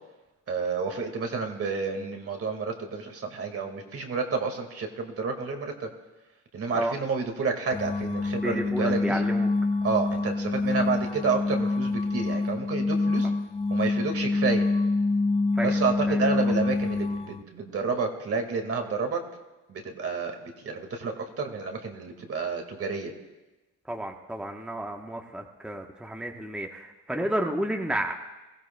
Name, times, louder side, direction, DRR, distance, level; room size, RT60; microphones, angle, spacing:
voice 1, 0.5-5.9 6.5-9.2 9.8-13.3 13.7-14.7 15.6-19.2 19.7-23.1, right 4 dB, 50° right, 4 dB, 1.8 m, -30 dB
sound 1, 7.7-17.4, left 3 dB, 20° left, 0.4 m, -26 dB
voice 2, 8.4-9.5 15.5-15.8 16.1-16.5 23.9-28.1, right 1 dB, 5° right, 2 dB, 1.0 m, -31 dB
22.5 x 15.5 x 2.2 m, 1.1 s
cardioid pair, 90°, 30 cm